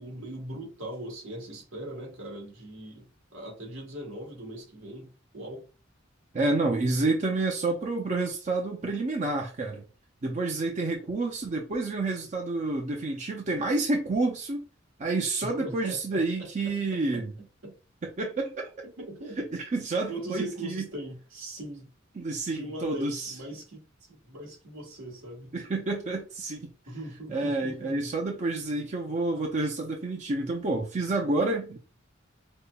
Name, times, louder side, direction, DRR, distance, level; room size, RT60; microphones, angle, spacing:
voice 1, 0.0-5.7 15.4-17.7 18.8-19.4 20.1-21.9 22.5-23.8 24.1-25.6 26.9-28.0, right 1 dB, 80° right, 1.3 m, -40 dB
voice 2, 6.3-9.8 10.2-14.7 15.0-17.3 18.2-18.7 19.4-20.8 22.2-23.3 25.5-26.7 27.3-31.8, right 2 dB, 40° right, 0.5 m, -29 dB
5.2 x 2.1 x 2.3 m
head